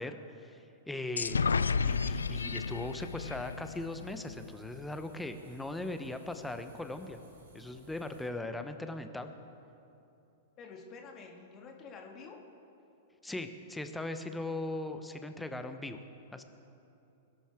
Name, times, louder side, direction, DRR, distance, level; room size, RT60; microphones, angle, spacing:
voice 1, 0.0-7.2 7.5-9.4 13.2-16.0 16.3-16.4, left 2 dB, 5° left, 8 dB, 0.9 m, -39 dB
sound 1, 1.2-4.8, left 5 dB, 80° left, 0.3 m, -32 dB
sound 2, 1.8-8.3, right 1 dB, 75° right, 3.5 m, -58 dB
voice 2, 10.6-12.4, left 4 dB, 35° left, 1 dB, 2.1 m, -48 dB
21.5 x 12.0 x 3.7 m, 2.9 s
figure-of-eight pair, 100°, 0 cm